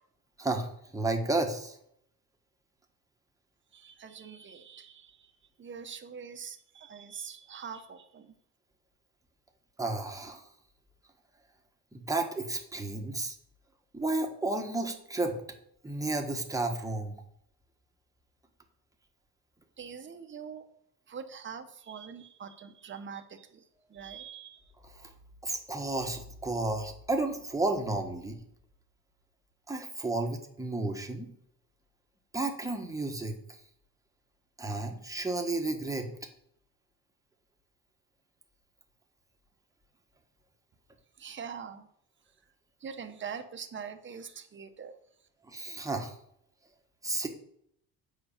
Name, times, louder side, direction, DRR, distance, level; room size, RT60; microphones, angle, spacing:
voice 1, 0.4-1.8 9.8-10.4 11.9-13.3 13.9-15.4 15.8-17.2 24.8-25.1 25.4-28.4 29.7-31.3 32.3-33.4 34.6-36.1 45.5-46.1 47.0-47.3, right 2 dB, 10° right, 3 dB, 1.3 m, -32 dB
voice 2, 3.7-5.2 5.6-8.3 19.8-20.6 21.1-23.6 23.9-24.6 41.2-41.9 42.8-44.9, right 6 dB, 30° right, 7 dB, 1.0 m, -43 dB
7.9 x 5.7 x 7.2 m, 0.71 s
cardioid pair, 140°, 39 cm